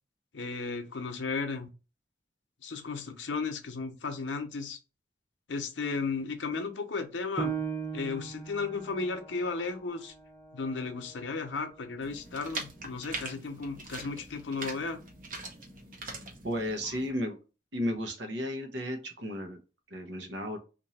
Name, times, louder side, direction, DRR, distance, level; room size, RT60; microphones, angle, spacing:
voice 1, 0.3-1.7 2.6-4.8 5.5-7.6 7.9-10.1 10.5-15.0, left 4 dB, 85° left, 0.7 m, -34 dB
Piano, 7.4-12.5 13.0-13.1 13.7-14.2, right 6 dB, 10° left, 0.8 m, -40 dB
sound 1, 12.0-17.1, right 3 dB, 45° right, 0.7 m, -42 dB
voice 2, 16.4-17.4 17.7-19.6 19.9-20.6, equal, 75° right, 0.9 m, -33 dB
2.9 x 2.6 x 4.1 m
head